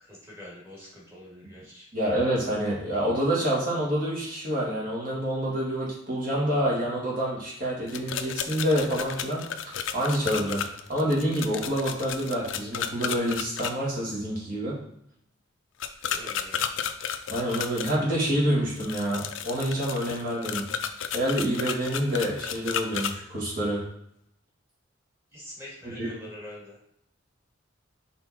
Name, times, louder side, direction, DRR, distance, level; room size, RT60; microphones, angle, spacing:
voice 1, 0.1-1.9 16.0-16.6 17.7-17.8 25.3-26.8, left 1 dB, 15° right, -6 dB, 2.4 m, -45 dB
voice 2, 1.9-14.7 17.3-20.6 21.1-23.8 25.8-26.1, equal, 45° right, -5 dB, 2.2 m, -27 dB
sound 1, 7.9-13.7 15.8-18.0 18.8-23.1, left 8 dB, 80° left, 0.5 m, -33 dB
5.7 x 3.9 x 4.3 m, 0.74 s
head